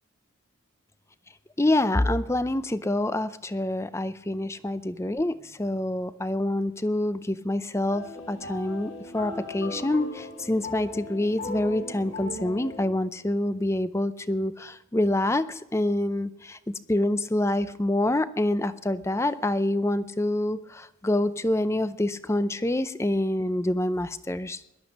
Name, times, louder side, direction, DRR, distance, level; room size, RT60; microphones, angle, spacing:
voice 1, 1.6-24.6, left 1 dB, 15° left, 13 dB, 0.5 m, -26 dB
sound 1, 7.8-12.8, left 2 dB, 70° left, 4.5 m, -38 dB
17.5 x 11.5 x 5.2 m, 0.94 s
head